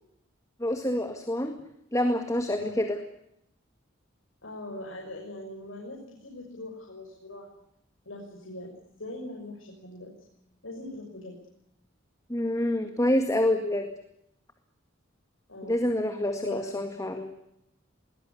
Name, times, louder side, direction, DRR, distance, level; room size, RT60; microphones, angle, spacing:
voice 1, 0.6-1.6 1.9-3.0 12.3-13.9 15.7-17.3, left 1 dB, 15° left, 6 dB, 2.0 m, -27 dB
voice 2, 4.4-7.5 8.0-10.1 10.6-11.4 15.5-15.8 16.3-16.8, left 1 dB, 90° left, -1 dB, 6.5 m, -41 dB
21.0 x 20.0 x 9.7 m, 0.78 s
head